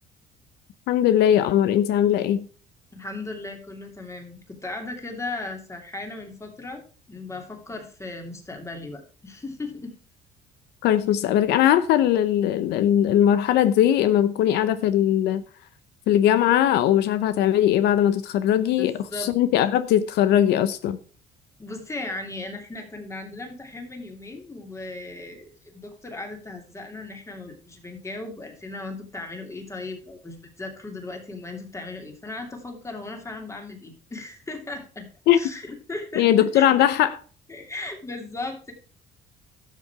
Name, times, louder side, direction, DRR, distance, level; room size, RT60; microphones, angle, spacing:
voice 1, 0.9-2.5 10.8-15.4 16.1-21.0 35.3-35.4 36.2-37.2, left 11 dB, 80° left, 0.7 m, -20 dB
voice 2, 2.9-9.9 18.8-19.3 21.6-35.1 35.3-36.3 36.5-36.7 37.5-38.7, left 2 dB, 15° left, 2.8 m, -37 dB
12.0 x 6.7 x 4.8 m
cardioid pair, 110°, 17 cm